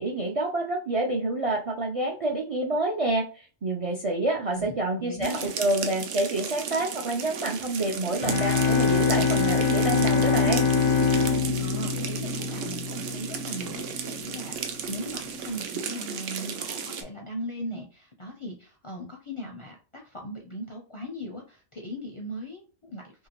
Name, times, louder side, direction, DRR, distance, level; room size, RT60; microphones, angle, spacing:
voice 1, 0.0-10.7, right 2 dB, 50° right, -2 dB, 0.4 m, -28 dB
voice 2, 4.5-5.5 11.3-23.3, equal, 40° left, 0 dB, 0.4 m, -39 dB
sound 1, 5.2-17.0, right 7 dB, 80° right, 0.9 m, -34 dB
sound 2, 8.2-12.9, left 5 dB, 80° left, 0.9 m, -24 dB
2.8 x 2.7 x 2.9 m, 0.36 s
omnidirectional pair, 1.2 m